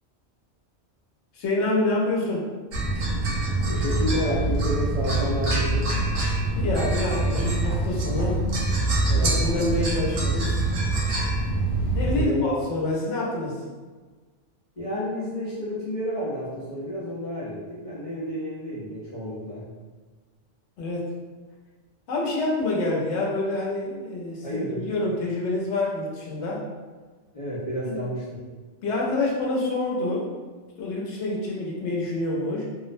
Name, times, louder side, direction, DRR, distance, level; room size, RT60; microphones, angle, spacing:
voice 1, 1.3-2.5 6.5-8.4 9.1-10.6 12.0-13.6 20.8-21.1 22.1-26.6 27.9-28.0 28.8-30.3 30.8-32.6, left 2 dB, 80° left, -3 dB, 0.9 m, -27 dB
sound 1, 2.7-12.3, right 2 dB, 85° right, 0.9 m, -25 dB
voice 2, 3.7-5.9 9.1-9.4 12.0-12.4 14.8-19.7 24.4-24.9 27.3-28.4, equal, 50° left, -10 dB, 0.4 m, -30 dB
2.4 x 2.0 x 2.5 m, 1.4 s
omnidirectional pair, 1.2 m